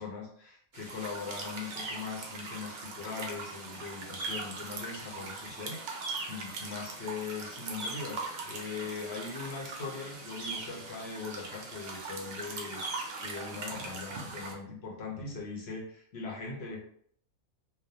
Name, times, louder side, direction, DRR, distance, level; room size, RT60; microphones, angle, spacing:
voice 1, 0.0-6.0 6.3-12.8 13.2-16.8, left 4 dB, 60° left, -1 dB, 0.7 m, -40 dB
sound 1, 0.7-14.5, right 3 dB, 65° right, 0.6 m, -40 dB
2.3 x 2.1 x 2.7 m, 0.63 s
omnidirectional pair, 1.4 m